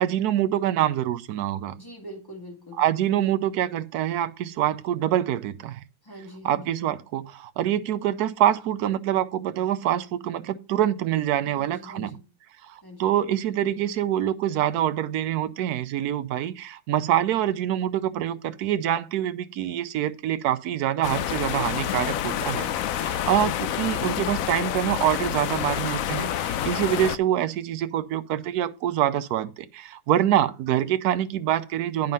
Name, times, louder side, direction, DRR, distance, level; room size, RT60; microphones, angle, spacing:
voice 1, 0.0-1.7 2.8-5.8 6.4-12.1 12.6-32.1, right 11 dB, 70° right, 1.1 m, -25 dB
voice 2, 1.7-2.8 6.0-6.8 11.4-12.2 12.8-13.0, equal, 15° left, 2.0 m, -43 dB
sound 1, 21.0-27.2, left 11 dB, 70° left, 0.8 m, -28 dB
9.2 x 5.4 x 5.4 m
omnidirectional pair, 1.8 m